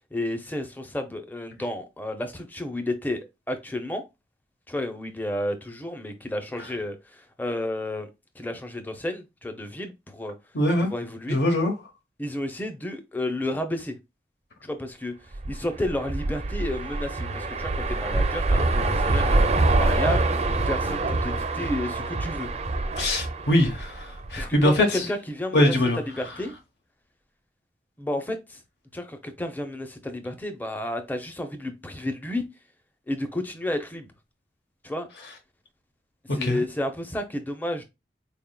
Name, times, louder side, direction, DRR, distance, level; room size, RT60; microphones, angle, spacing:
voice 1, 0.1-4.0 4.7-8.1 8.4-10.3 10.8-11.4 12.2-14.0 14.6-20.3 20.7-22.5 24.3-25.8 26.2-26.5 28.0-28.6 28.9-32.4 33.1-34.1 34.8-35.1 36.3-37.8, left 1 dB, 10° left, 0.5 m, -31 dB
voice 2, 10.5-10.9 11.3-11.7 23.0-25.1 25.5-26.0 26.2-26.3 36.3-36.6, left 1 dB, 75° left, 0.9 m, -22 dB
sound 1, 15.3-24.6, right 2 dB, 35° right, 0.4 m, -25 dB
4.2 x 3.5 x 2.2 m
head